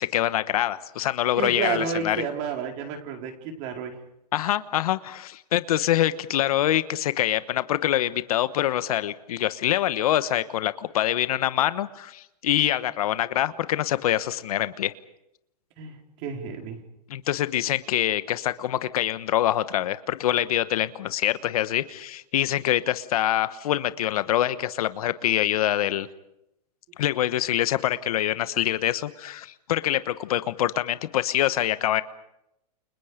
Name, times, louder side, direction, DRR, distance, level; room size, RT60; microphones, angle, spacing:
voice 1, 0.0-2.2 4.3-14.9 17.1-26.1 27.0-32.0, left 12 dB, 60° left, 13 dB, 1.2 m, -25 dB
voice 2, 1.4-3.9 15.8-16.8, right 6 dB, 35° right, 3 dB, 4.6 m, -31 dB
29.5 x 28.5 x 5.2 m, 0.83 s
hypercardioid pair, 155°, 21 cm